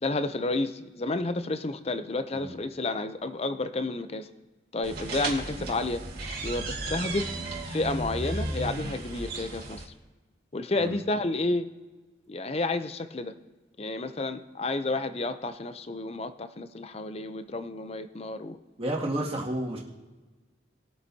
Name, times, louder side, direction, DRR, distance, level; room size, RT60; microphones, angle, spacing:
voice 1, 0.0-4.3 4.7-6.0 6.4-7.4 7.6-9.9 10.5-11.7 12.3-13.3 13.8-18.6, left 2 dB, 30° left, 10 dB, 0.5 m, -31 dB
sound 1, 4.8-9.8, right 2 dB, 50° right, 2.0 m, -34 dB
voice 2, 18.8-19.8, right 1 dB, 30° right, -4 dB, 2.2 m, -31 dB
21.0 x 7.7 x 2.8 m, 1.3 s
head